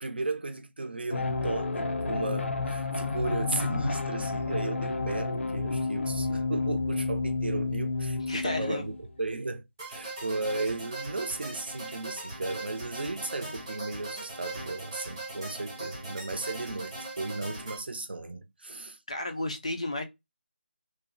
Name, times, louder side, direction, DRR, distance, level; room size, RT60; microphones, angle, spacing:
voice 1, 0.0-9.6 9.9-19.0, right 3 dB, 55° right, 0.6 m, -35 dB
sound 1, 1.1-9.0, left 3 dB, 85° left, 0.5 m, -30 dB
voice 2, 8.3-8.9 19.1-20.0, left 2 dB, 30° left, 0.4 m, -32 dB
sound 2, 9.8-17.8, right 2 dB, 15° right, 0.9 m, -40 dB
2.6 x 2.1 x 2.5 m
figure-of-eight pair, 175°, 7 cm